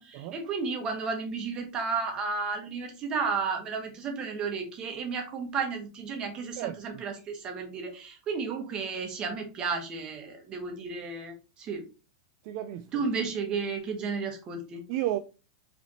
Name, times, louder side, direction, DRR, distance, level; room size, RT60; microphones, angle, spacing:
voice 1, 0.0-11.8 12.9-14.8, right 5 dB, 25° right, 1.1 m, -33 dB
voice 2, 6.6-7.0 12.4-12.9 14.9-15.2, right 13 dB, 45° right, 0.3 m, -32 dB
5.1 x 3.3 x 2.8 m
supercardioid pair, 160°, 4 cm